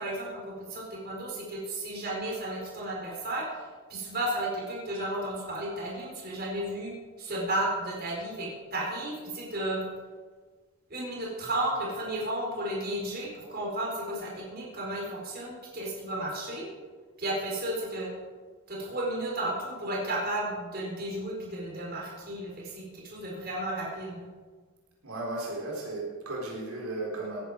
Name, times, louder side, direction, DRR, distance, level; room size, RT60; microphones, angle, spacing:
voice 1, 0.0-9.8 10.9-16.7 17.2-18.1 18.7-24.3, right 1 dB, 45° right, -3 dB, 4.5 m, -33 dB
voice 2, 25.0-27.4, right 2 dB, 80° right, -3 dB, 4.0 m, -35 dB
18.0 x 10.5 x 5.2 m, 1.5 s
head